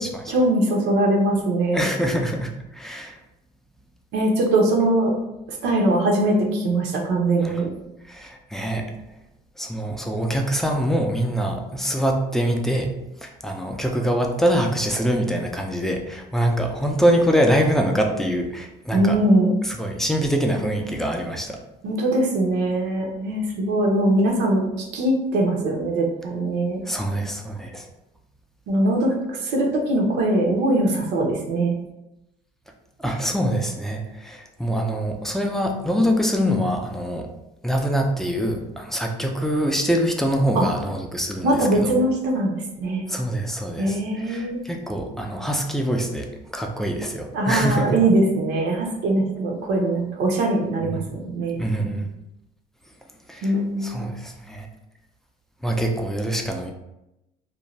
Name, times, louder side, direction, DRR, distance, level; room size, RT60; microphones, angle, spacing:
voice 1, 0.3-1.9 4.1-5.1 5.6-7.7 18.9-19.6 21.8-26.8 28.7-31.8 40.5-40.6 41.4-43.1 43.8-44.7 47.3-51.6 53.4-54.0, right 1 dB, 90° right, 1 dB, 0.6 m, -21 dB
voice 2, 1.7-3.2 7.4-7.6 8.1-8.9 9.6-12.9 13.2-19.2 19.7-21.6 26.8-27.9 33.0-37.3 37.6-41.9 43.1-44.0 44.3-46.3 46.5-48.0 50.9-51.1 51.6-52.1 53.3-53.5 53.8-54.7 55.6-56.7, equal, ahead, 2 dB, 0.4 m, -24 dB
2.6 x 2.1 x 3.0 m, 0.90 s
cardioid pair, 110°, 17 cm